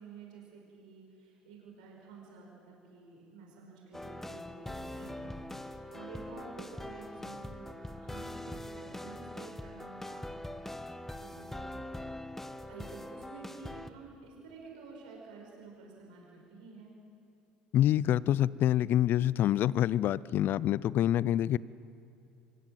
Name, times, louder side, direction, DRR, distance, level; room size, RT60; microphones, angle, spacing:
voice 1, 0.0-10.6 11.1-11.7 12.7-16.9, right 4 dB, 75° right, -1 dB, 5.4 m, -51 dB
sound 1, 3.9-13.9, left 1 dB, 5° left, 1.3 m, -43 dB
voice 2, 17.7-21.6, left 12 dB, 50° left, 21 dB, 0.6 m, -26 dB
25.5 x 22.0 x 7.8 m, 2.7 s
hypercardioid pair, 65°, 4 cm